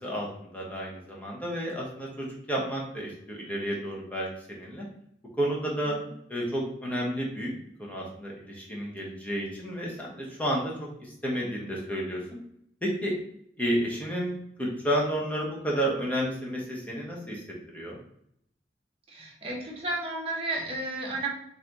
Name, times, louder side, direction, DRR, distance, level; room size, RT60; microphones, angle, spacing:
voice 1, 0.0-4.8 5.4-6.0 6.3-7.5 7.8-12.2 12.8-13.1 13.6-14.3 14.6-17.4 17.7-18.0, equal, 10° left, -3 dB, 1.0 m, -31 dB
voice 2, 19.1-21.3, right 2 dB, 35° right, -2 dB, 1.0 m, -33 dB
5.7 x 2.8 x 3.0 m, 0.72 s
head